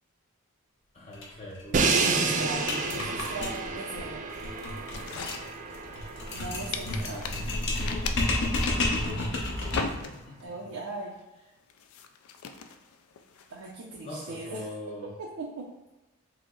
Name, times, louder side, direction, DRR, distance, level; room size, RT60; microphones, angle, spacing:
voice 1, 0.9-3.2 7.1-7.7 8.7-9.4 9.7-10.5 14.0-15.1, left 1 dB, 30° left, -7 dB, 0.6 m, -41 dB
sound 1, 1.1-1.3 1.6-1.7 1.9-10.1, left 2 dB, 60° left, 0.7 m, -31 dB
Crash cymbal, 1.7-7.7, right 4 dB, 35° right, 0.3 m, -30 dB
voice 2, 1.9-4.3 6.3-7.2 10.4-11.2 13.5-14.7 15.2-15.7, right 2 dB, 90° right, -2 dB, 0.5 m, -39 dB
sound 2, 4.9-6.4 6.7-10.5 10.9-11.2 11.7-14.0, left 5 dB, 85° left, 0.4 m, -38 dB
4.7 x 2.0 x 3.7 m, 1.1 s
head